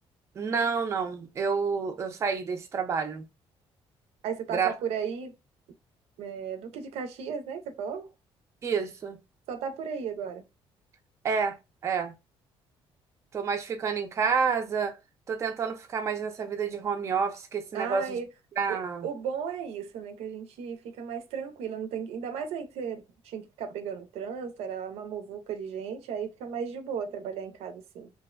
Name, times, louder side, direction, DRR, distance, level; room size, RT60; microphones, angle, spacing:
voice 1, 0.4-3.3 4.5-4.7 8.6-9.2 11.2-11.6 11.8-12.1 13.3-15.0 15.3-18.2 18.6-19.1, right 5 dB, 30° right, 0.4 m, -29 dB
voice 2, 4.2-5.3 6.2-8.1 9.5-10.4 17.7-18.3 18.7-28.1, right 7 dB, 85° right, 0.5 m, -35 dB
2.5 x 2.1 x 2.3 m
cardioid pair, 150°, 10 cm